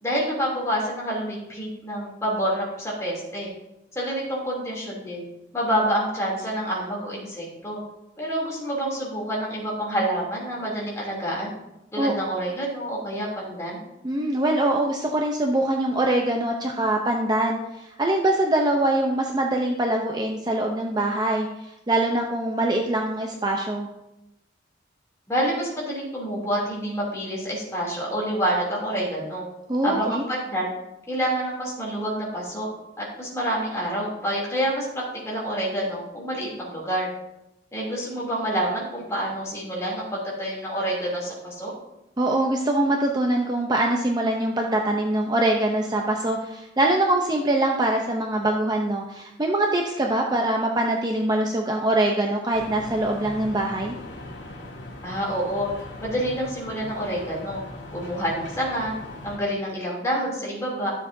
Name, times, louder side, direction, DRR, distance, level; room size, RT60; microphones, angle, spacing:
voice 1, 0.0-3.5 3.9-5.2 5.5-7.8 8.2-11.5 11.9-13.8 25.3-29.4 29.8-30.7 31.1-32.7 33.0-37.1 37.7-41.7 55.0-55.7 56.0-57.6 57.9-58.9 59.2-60.9, equal, 15° left, -4 dB, 2.9 m, -27 dB
voice 2, 14.0-21.5 21.9-23.9 29.7-30.2 42.2-53.9, right 1 dB, 20° right, 1 dB, 0.6 m, -23 dB
sound 1, 52.5-59.4, left 1 dB, 75° left, 1.9 m, -40 dB
12.5 x 7.3 x 2.7 m, 0.91 s
head